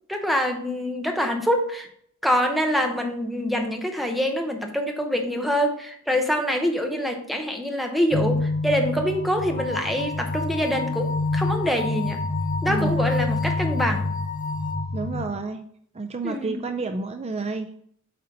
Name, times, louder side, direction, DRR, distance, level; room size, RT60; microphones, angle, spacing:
voice 1, 0.1-1.9 2.2-12.2 12.6-14.1 16.2-16.6, equal, ahead, 3 dB, 0.8 m, -25 dB
sound 1, 8.1-15.3, left 2 dB, 70° left, 2.0 m, -27 dB
sound 2, 9.6-14.7, left 4 dB, 40° left, 1.1 m, -34 dB
voice 2, 14.9-15.7 15.9-17.8, right 3 dB, 30° right, 7 dB, 0.4 m, -30 dB
7.7 x 3.9 x 4.1 m, 0.64 s
head